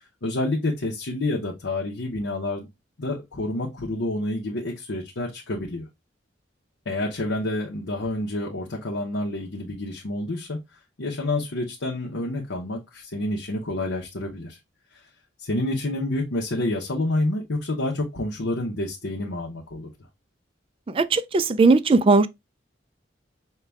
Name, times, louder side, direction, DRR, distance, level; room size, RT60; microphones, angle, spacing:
voice 1, 0.2-2.7 3.0-5.9 6.9-10.6 11.0-14.6 15.4-19.9, left 2 dB, 75° left, 0.9 m, -28 dB
voice 2, 20.9-22.3, right 3 dB, 30° right, 0.3 m, -18 dB
5.6 x 2.3 x 3.4 m
head